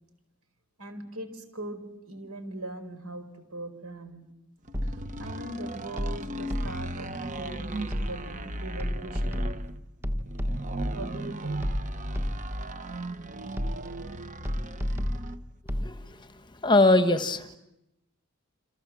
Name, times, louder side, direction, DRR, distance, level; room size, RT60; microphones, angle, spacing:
voice 1, 0.8-4.4 4.8-9.4 10.9-11.7, right 1 dB, 90° right, 9 dB, 4.7 m, -40 dB
sound 1, 4.7-5.3 6.0-7.0 7.9-8.4 8.8-10.9 11.6-12.7 13.6-14.1 14.5-16.0, equal, 10° right, 1.2 m, -31 dB
sound 2, 4.7-15.5, right 1 dB, 35° right, 1.0 m, -37 dB
voice 2, 15.8-17.6, left 2 dB, 20° left, 10 dB, 1.3 m, -23 dB
29.0 x 27.0 x 7.5 m, 0.89 s
head